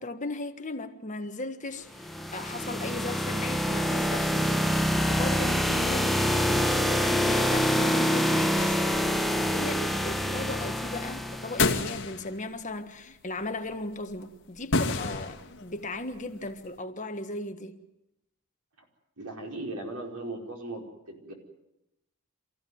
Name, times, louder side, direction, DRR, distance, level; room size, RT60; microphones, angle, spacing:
voice 1, 0.0-17.8, left 2 dB, 35° left, 1.5 m, -37 dB
sound 1, 1.9-11.8, equal, ahead, 1.0 m, -26 dB
sound 2, 8.6-12.7 13.1-13.8 14.2-14.3 14.6-16.5, left 3 dB, 55° left, 2.0 m, -32 dB
voice 2, 19.2-21.3, right 2 dB, 90° right, 5.0 m, -38 dB
27.5 x 15.5 x 9.5 m
head